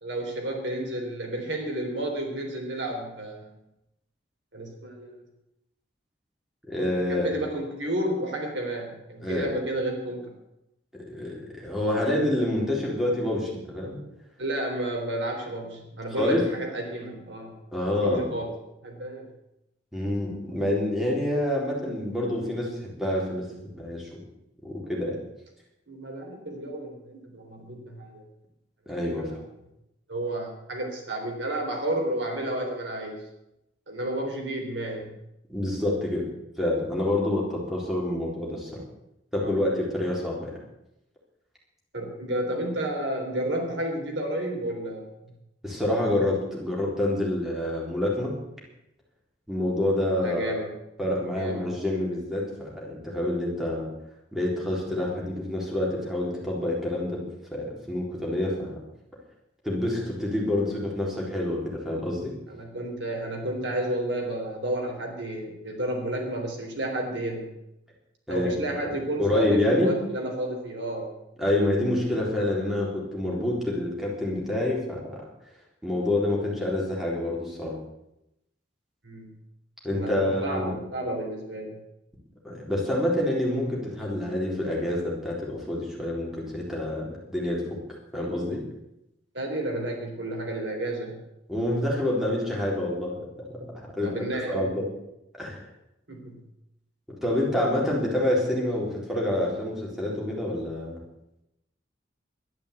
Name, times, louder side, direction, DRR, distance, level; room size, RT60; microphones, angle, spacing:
voice 1, 0.0-3.5 4.5-5.2 7.1-10.3 14.4-18.5 18.8-19.3 25.9-28.2 28.9-29.4 30.1-33.2 33.9-35.1 39.4-39.6 41.9-45.3 50.2-50.7 51.4-51.7 62.5-67.5 68.3-71.1 79.0-79.3 79.9-81.8 89.3-91.2 94.0-94.7 96.1-96.4, right 1 dB, 75° right, 2 dB, 3.6 m, -31 dB
voice 2, 6.7-7.3 9.2-9.5 11.1-14.0 16.2-16.5 17.7-18.3 19.9-24.1 24.6-25.1 28.9-29.3 35.5-36.2 36.6-38.8 39.3-40.6 45.6-48.3 49.5-50.5 51.0-53.9 54.3-57.2 57.5-58.7 59.6-62.3 68.3-68.5 68.8-68.9 69.2-70.0 71.4-75.2 75.8-77.7 79.8-80.7 82.4-87.8 88.1-88.6 91.5-93.7 94.0-94.1 94.5-94.9 95.4-95.7 97.2-101.0, left 1 dB, ahead, -4 dB, 3.8 m, -27 dB
12.0 x 10.5 x 8.3 m, 0.87 s
head